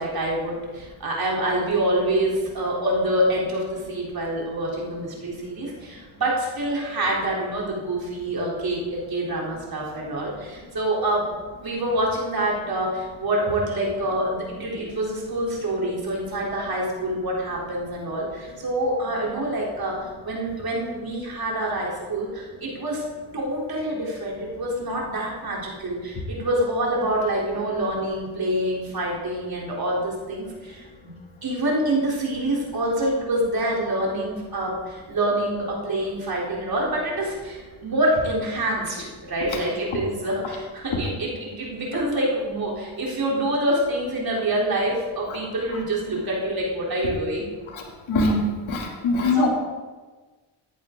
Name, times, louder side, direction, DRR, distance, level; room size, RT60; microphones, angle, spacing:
voice 1, 0.0-11.3 11.6-23.0 23.3-31.1 31.4-47.5 49.3-49.5, right 1 dB, 50° right, -3 dB, 3.7 m, -26 dB
voice 2, 48.1-49.5, left 2 dB, 70° left, 0 dB, 2.8 m, -22 dB
14.0 x 10.5 x 3.8 m, 1.3 s
cardioid pair, 70°, 48 cm